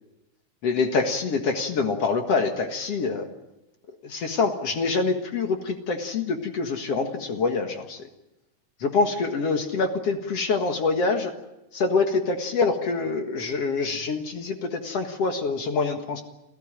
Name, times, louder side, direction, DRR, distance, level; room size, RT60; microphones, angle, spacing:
voice 1, 0.6-3.3 4.0-8.1 8.8-11.3 11.7-16.2, left 4 dB, 50° left, 5 dB, 2.3 m, -25 dB
27.5 x 15.0 x 8.9 m, 0.95 s
omnidirectional pair, 4.1 m